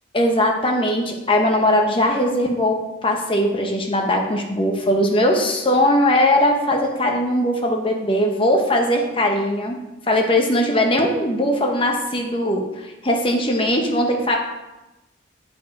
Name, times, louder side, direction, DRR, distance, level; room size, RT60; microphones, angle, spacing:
voice 1, 0.1-9.8 10.1-14.4, left 1 dB, 30° left, 2 dB, 1.1 m, -20 dB
9.0 x 4.9 x 4.6 m, 1.0 s
head